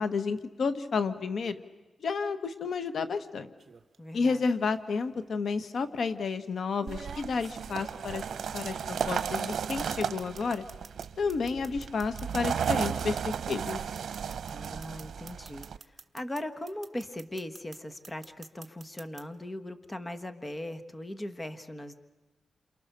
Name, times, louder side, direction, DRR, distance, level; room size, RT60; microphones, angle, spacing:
voice 1, 0.0-1.6 2.0-3.5 4.1-8.2 8.5-10.6 11.2-13.8, left 4 dB, 70° left, 10 dB, 1.3 m, -31 dB
sound 1, 3.6-4.0 5.2-5.3 6.8-9.8 10.0-16.4 16.7-17.8 18.0-19.2, right 4 dB, 45° right, 1.4 m, -48 dB
voice 2, 4.0-4.5 14.5-15.7 16.1-22.0, left 1 dB, 20° left, 9 dB, 1.4 m, -39 dB
sound 2, 6.9-15.8, right 7 dB, 85° right, 0.8 m, -34 dB
29.0 x 28.0 x 6.8 m, 1.1 s
wide cardioid pair, 115°, 0 cm